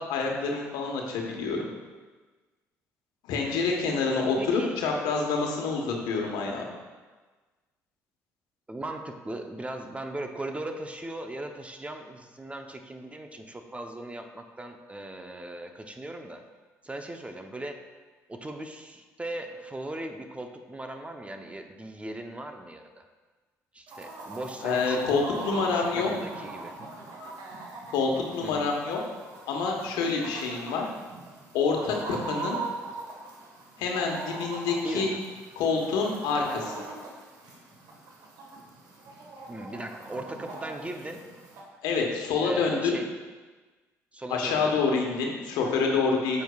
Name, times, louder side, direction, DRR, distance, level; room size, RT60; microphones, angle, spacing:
voice 1, 0.1-1.7 3.2-6.6 24.6-26.1 27.9-29.0 29.5-30.8 31.5-32.6 33.8-35.1 35.6-36.7 41.8-43.0 44.3-46.4, left 4 dB, 75° left, 1 dB, 1.3 m, -27 dB
voice 2, 4.4-4.9 8.7-16.4 16.8-17.9 18.3-23.1 23.7-26.8 28.4-28.7 34.8-35.2 39.5-41.2 42.4-43.1 44.1-44.8 46.3-46.4, right 1 dB, 15° right, 5 dB, 0.8 m, -38 dB
Chicken rooster, 23.9-41.6, right 3 dB, 65° right, 1.5 m, -41 dB
9.0 x 7.4 x 2.4 m, 1.3 s
hypercardioid pair, 55°, 7 cm